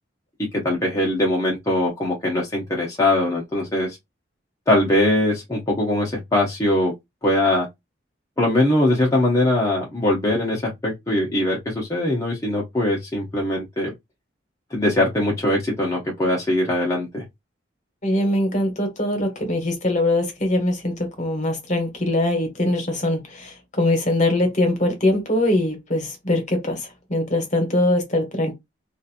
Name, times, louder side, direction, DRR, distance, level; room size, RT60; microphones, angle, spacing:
voice 1, 0.6-4.0 4.7-6.9 7.2-7.7 8.4-13.9 14.7-17.2, left 1 dB, 15° left, 0.8 m, -21 dB
voice 2, 18.0-28.5, left 1 dB, 40° left, 1.1 m, -22 dB
2.9 x 2.5 x 2.4 m
head